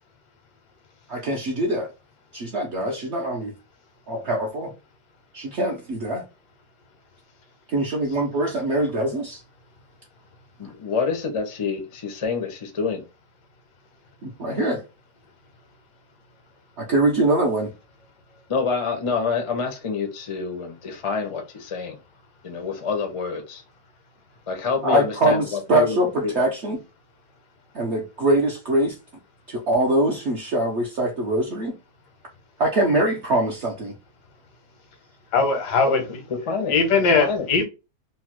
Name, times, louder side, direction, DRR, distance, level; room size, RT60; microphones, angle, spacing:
voice 1, 1.1-1.9 2.3-3.5 4.1-4.7 5.3-6.2 7.7-9.4 14.2-14.8 16.8-17.7 24.8-26.8 27.7-29.0 29.5-31.8 32.6-33.9, right 1 dB, 65° right, 0.7 m, -23 dB
voice 2, 10.6-13.0 18.5-21.9 22.4-23.6 24.5-26.4 35.8-36.0 36.3-36.8 37.2-37.5, left 5 dB, 60° left, 0.3 m, -27 dB
voice 3, 35.3-36.0 36.7-37.6, left 4 dB, 85° left, 1.4 m, -19 dB
3.1 x 2.1 x 3.0 m
omnidirectional pair, 1.7 m